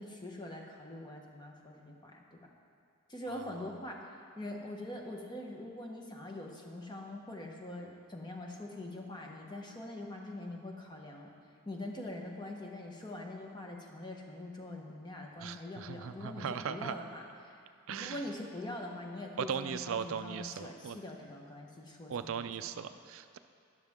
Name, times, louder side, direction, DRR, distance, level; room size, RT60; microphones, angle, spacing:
voice 1, 0.0-2.5 3.1-11.3 11.7-17.6 17.9-22.7, left 1 dB, 20° left, 0 dB, 1.0 m, -43 dB
voice 2, 15.4-16.9 17.9-18.2 19.4-21.0 22.1-23.4, right 7 dB, 65° right, 10 dB, 0.4 m, -38 dB
13.0 x 11.0 x 3.6 m, 2.3 s
head